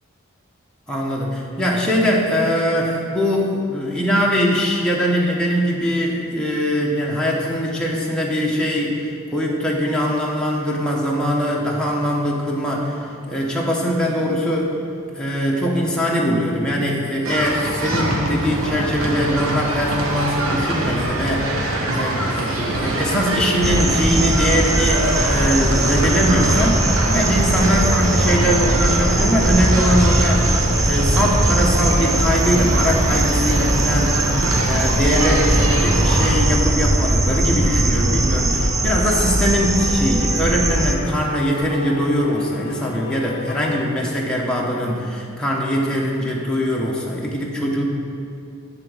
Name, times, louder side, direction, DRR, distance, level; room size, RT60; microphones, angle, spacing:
voice 1, 0.9-14.7 15.1-21.6 21.9-30.5 30.8-34.3 34.6-47.8, equal, 5° left, -4 dB, 0.9 m, -21 dB
sound 1, 17.2-36.3, right 1 dB, 80° right, 1.3 m, -23 dB
sound 2, 23.6-40.9, right 1 dB, 15° right, 0.4 m, -20 dB
sound 3, 35.9-43.8, left 5 dB, 45° left, 0.6 m, -34 dB
10.5 x 4.0 x 6.3 m, 2.5 s
head